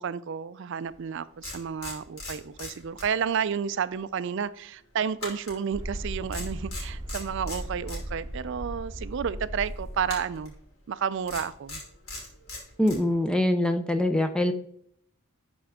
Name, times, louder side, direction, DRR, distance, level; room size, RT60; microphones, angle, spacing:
voice 1, 0.0-10.5 10.9-11.8, right 7 dB, 55° right, 0.3 m, -31 dB
sound 1, 0.9-1.0 1.4-3.5 3.7-3.9 5.2-6.0 6.3-8.0 10.0-10.5 11.3-13.0, left 2 dB, 75° left, 2.8 m, -39 dB
sound 2, 5.7-10.5, right 1 dB, 15° right, 2.2 m, -37 dB
voice 2, 12.8-14.5, left 1 dB, 5° left, 0.5 m, -24 dB
11.0 x 4.4 x 3.6 m
head